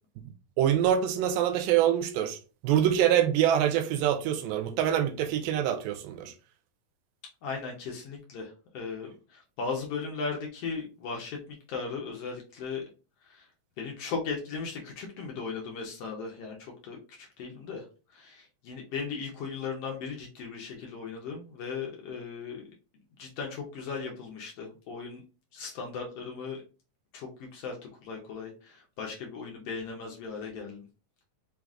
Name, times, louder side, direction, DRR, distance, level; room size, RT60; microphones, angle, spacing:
voice 1, 0.6-2.4 2.6-6.3, right 10 dB, 85° right, 2.3 m, -25 dB
voice 2, 7.4-12.8 13.2-13.5 13.8-17.8 18.1-22.6 23.2-25.2 25.5-26.6 27.1-27.8 28.0-30.8, left 5 dB, 90° left, 1.3 m, -37 dB
5.7 x 2.4 x 3.6 m
omnidirectional pair, 4.1 m